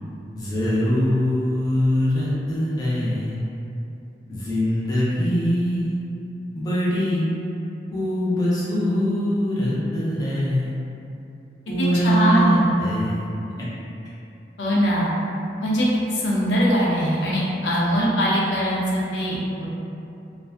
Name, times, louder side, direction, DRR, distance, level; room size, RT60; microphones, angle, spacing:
voice 1, 0.3-3.4 4.3-6.0 6.5-7.2 7.9-10.7 11.7-13.3 13.6-13.7, equal, 20° left, -9 dB, 0.6 m, -22 dB
voice 2, 11.8-12.7 14.6-15.1 15.6-19.7, equal, 85° left, -6 dB, 0.6 m, -21 dB
2.5 x 2.2 x 2.4 m, 2.7 s
head